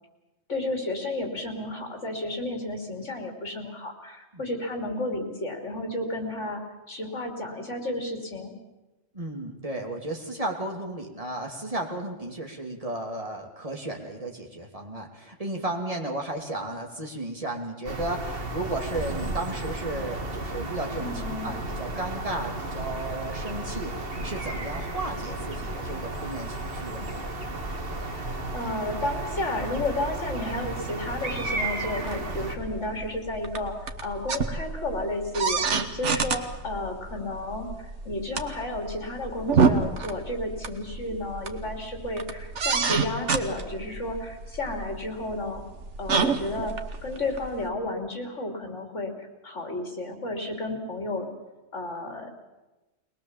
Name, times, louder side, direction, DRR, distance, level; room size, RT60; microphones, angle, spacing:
voice 1, 0.5-8.5 21.0-21.5 28.1-45.6 46.0-46.7 47.0-51.3 51.7-52.3, left 2 dB, 85° left, 3 dB, 3.4 m, -32 dB
voice 2, 9.1-21.1 21.4-27.2, right 2 dB, 30° right, 1 dB, 2.7 m, -34 dB
sound 1, 17.9-32.6, right 2 dB, 50° right, 2.1 m, -33 dB
sound 2, 32.0-47.7, right 5 dB, 80° right, 1.5 m, -29 dB
21.5 x 20.0 x 7.3 m, 1.1 s
omnidirectional pair, 1.2 m